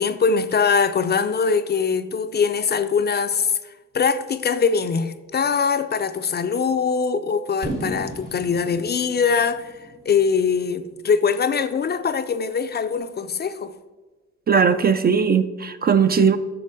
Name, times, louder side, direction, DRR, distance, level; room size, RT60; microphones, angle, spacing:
voice 1, 0.0-3.6 3.9-9.7 10.1-13.7, left 5 dB, 35° left, 0.4 m, -22 dB
Fireworks, 7.6-11.5, right 2 dB, 85° right, 1.8 m, -35 dB
voice 2, 14.5-16.4, right 6 dB, 30° right, 0.4 m, -18 dB
6.9 x 6.5 x 4.8 m
cardioid pair, 90°, 30 cm